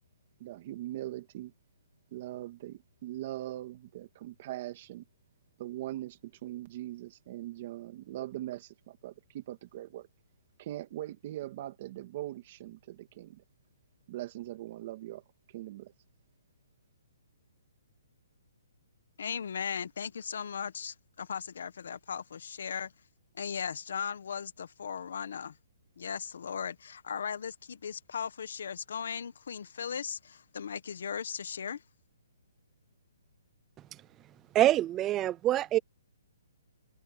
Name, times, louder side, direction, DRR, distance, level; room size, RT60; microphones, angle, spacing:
voice 1, 0.4-1.5 2.1-5.1 5.6-10.1 10.6-13.4 14.1-15.2 15.5-15.9, right 14 dB, 30° right, 2.3 m, -41 dB
voice 2, 19.2-22.9 23.3-25.6 26.0-31.8, left 7 dB, 60° left, 1.3 m, -37 dB
voice 3, 34.5-35.8, right 13 dB, 15° right, 0.5 m, -25 dB
hypercardioid pair, 175°, 0 cm